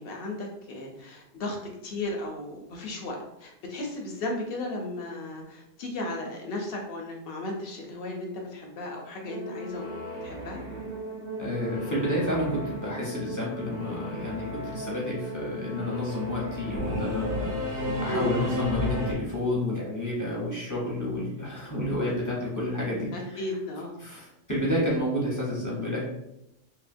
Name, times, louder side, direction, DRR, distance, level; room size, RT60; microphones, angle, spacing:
voice 1, 0.0-1.6 1.8-9.9 10.2-10.6 18.1-18.4 23.1-24.0, left 2 dB, 60° left, 1 dB, 0.6 m, -35 dB
Singing / Musical instrument, 9.2-19.1, equal, 75° right, 1.1 m, -34 dB
voice 2, 11.4-23.5 24.0-26.1, left 1 dB, 20° left, -6 dB, 0.5 m, -30 dB
2.8 x 2.6 x 2.5 m, 0.84 s
omnidirectional pair, 1.3 m